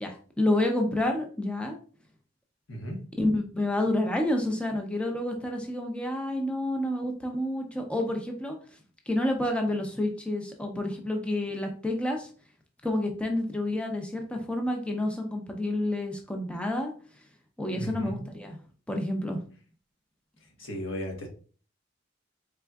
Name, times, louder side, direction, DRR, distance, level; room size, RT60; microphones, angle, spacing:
voice 1, 0.0-1.8 3.2-8.6 9.1-12.3 12.8-16.9 17.6-18.6 18.9-19.4, left 1 dB, 5° left, 3 dB, 0.5 m, -29 dB
voice 2, 17.7-18.1 20.6-21.3, equal, 90° left, 1 dB, 1.2 m, -35 dB
4.2 x 3.5 x 2.3 m, 0.40 s
head